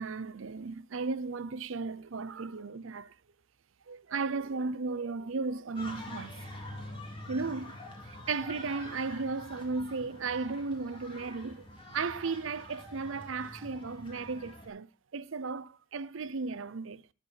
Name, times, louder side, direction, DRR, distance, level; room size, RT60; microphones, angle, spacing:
voice 1, 0.0-3.1 3.9-6.4 6.7-6.8 7.3-7.7 8.0-11.7 11.9-17.0, right 4 dB, 70° right, 0.6 m, -35 dB
sound 1, 5.8-14.7, left 1 dB, 25° left, 3.1 m, -46 dB
20.0 x 6.7 x 4.5 m
head